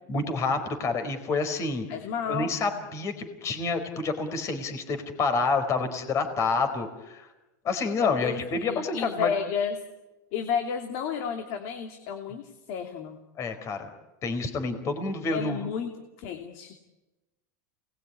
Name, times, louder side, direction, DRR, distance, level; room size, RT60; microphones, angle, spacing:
voice 1, 0.1-1.9 2.3-7.3 7.6-9.3 13.4-13.9 14.2-15.7, left 4 dB, 30° left, 8 dB, 4.4 m, -28 dB
voice 2, 1.9-2.5 8.2-9.8 10.3-13.2 15.3-15.9 16.2-16.7, left 7 dB, 55° left, 5 dB, 2.8 m, -31 dB
28.5 x 21.0 x 9.8 m, 1.1 s
supercardioid pair, 145°, 9 cm